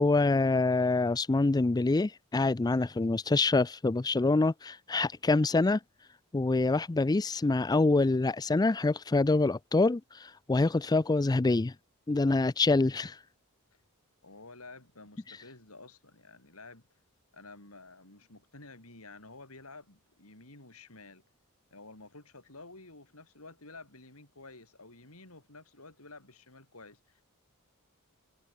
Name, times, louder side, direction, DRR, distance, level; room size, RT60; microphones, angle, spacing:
voice 1, 0.0-5.8 6.3-11.7 12.1-13.2 15.3-15.4, left 3 dB, 20° left, 0.4 m, -26 dB
voice 2, 14.2-16.8 17.3-21.2 21.7-27.2, left 3 dB, 70° left, 5.9 m, -51 dB
head